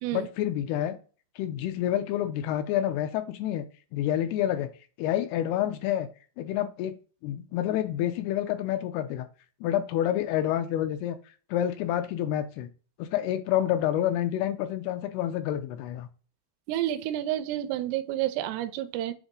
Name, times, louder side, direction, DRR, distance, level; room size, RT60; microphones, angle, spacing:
voice 1, 0.1-1.0 1.4-3.7 3.9-4.7 5.0-6.1 6.4-6.9 7.2-9.3 9.6-11.2 11.5-12.7 13.0-16.1, left 11 dB, 80° left, 2.5 m, -28 dB
voice 2, 16.7-19.1, right 13 dB, 85° right, 2.6 m, -30 dB
7.2 x 3.8 x 3.7 m
omnidirectional pair, 4.9 m